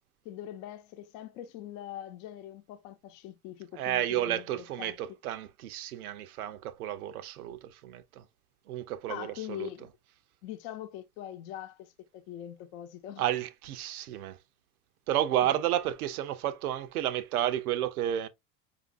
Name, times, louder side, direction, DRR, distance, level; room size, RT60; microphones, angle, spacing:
voice 1, 0.2-5.0 9.1-9.9 10.4-13.2, left 12 dB, 55° left, 0.8 m, -42 dB
voice 2, 3.7-8.3 8.7-9.9 13.2-14.4 15.1-18.3, right 12 dB, 75° right, 0.7 m, -31 dB
5.0 x 2.6 x 2.4 m
hypercardioid pair, 80°, 45 cm